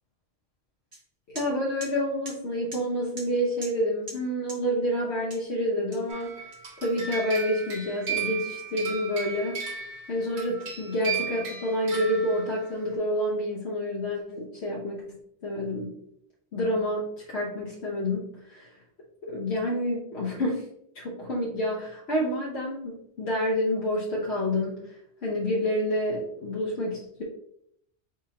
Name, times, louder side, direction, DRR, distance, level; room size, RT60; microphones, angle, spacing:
sound 1, 0.9-1.0 1.4-1.5 1.8-1.9 2.3-2.4 2.7-2.8 3.2-3.3 3.6-3.8 4.1-4.2 4.5-4.6 5.3-5.5 5.9-6.9, right 1 dB, 60° right, 1.3 m, -41 dB
voice 1, 1.3-6.5 6.8-9.6 10.1-15.0 15.4-16.0 16.5-18.7 19.2-20.7 20.9-27.2, equal, 80° left, -4 dB, 1.2 m, -28 dB
sound 2, 6.1-12.7, right 7 dB, 80° right, 1.2 m, -35 dB
4.2 x 4.2 x 2.8 m, 0.71 s
omnidirectional pair, 1.1 m